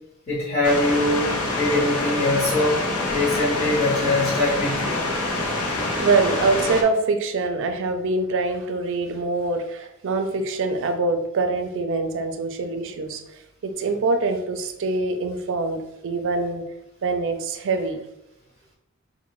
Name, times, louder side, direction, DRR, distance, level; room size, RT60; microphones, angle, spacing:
voice 1, 0.3-2.8 3.1-5.0, left 2 dB, 30° left, -9 dB, 0.9 m, -22 dB
sound 1, 0.6-6.8, left 2 dB, 80° left, 0.6 m, -26 dB
voice 2, 6.0-16.7 17.0-18.0, right 3 dB, 60° right, 6 dB, 0.4 m, -24 dB
4.2 x 2.1 x 3.0 m, 0.85 s
head